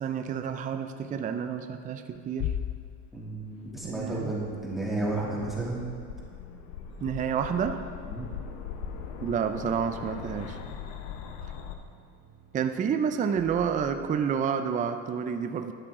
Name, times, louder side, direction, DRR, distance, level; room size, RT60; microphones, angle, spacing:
voice 1, 0.0-2.6 3.8-4.3 7.0-7.9 9.2-10.6 12.5-15.7, right 7 dB, 25° right, 8 dB, 0.5 m, -29 dB
Bass drum, 2.4-4.1, left 10 dB, 60° left, 0.6 m, -35 dB
voice 2, 3.1-5.9 8.1-8.3, right 2 dB, ahead, -6 dB, 2.6 m, -32 dB
sound 1, 3.4-11.7, left 7 dB, 75° left, 1.0 m, -41 dB
sound 2, 6.7-14.1, right 5 dB, 40° right, 2.7 m, -53 dB
12.0 x 9.3 x 3.7 m, 2.5 s
supercardioid pair, 115°, 35 cm